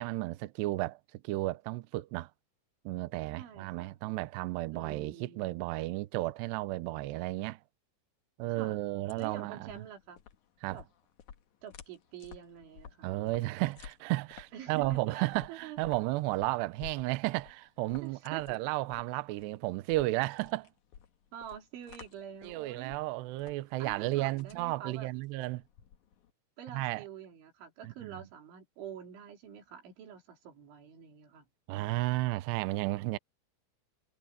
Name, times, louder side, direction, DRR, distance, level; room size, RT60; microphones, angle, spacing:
voice 1, 0.0-2.3 2.9-7.6 8.4-9.7 10.6-10.8 13.0-20.7 22.4-25.6 26.7-27.0 27.8-28.2 31.7-33.2, right 19 dB, 85° right, 2.4 m, -33 dB
voice 2, 3.4-4.0 4.7-5.5 7.4-7.5 8.5-8.8 9.2-10.2 10.7-10.9 11.6-13.4 14.5-15.9 18.0-18.6 21.3-23.0 23.8-25.1 26.6-31.5, right 9 dB, 70° right, 5.8 m, -47 dB
sound 1, 8.8-26.3, left 8 dB, 65° left, 1.9 m, -54 dB
omnidirectional pair, 5.8 m